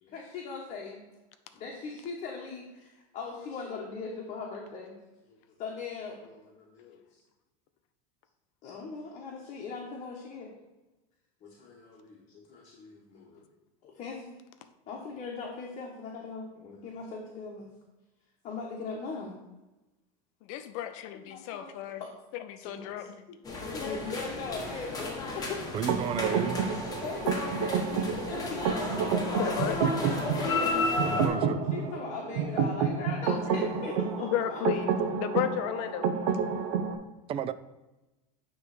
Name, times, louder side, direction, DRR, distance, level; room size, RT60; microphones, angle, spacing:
voice 1, 0.0-1.0 1.5-4.9 5.3-6.9 8.6-10.5 11.4-13.5 13.8-14.2 14.9-17.7 18.4-19.4 21.3-22.1 22.6-23.1 23.6-25.7 26.2-26.4 26.9-34.8, left 4 dB, 40° left, -2 dB, 1.2 m, -40 dB
voice 2, 20.5-22.0 22.3-23.2 29.4-30.0 34.2-34.9 35.2-36.1, left 10 dB, 65° left, 9 dB, 0.7 m, -33 dB
sound 1, 23.4-31.3, left 2 dB, 20° left, 1.4 m, -33 dB
voice 3, 25.7-26.6 31.0-31.6 37.3-37.5, right 9 dB, 30° right, 13 dB, 0.4 m, -32 dB
sound 2, 25.9-36.9, right 6 dB, 80° right, 0.8 m, -30 dB
9.2 x 3.2 x 4.9 m, 1.0 s
supercardioid pair, 125°, 19 cm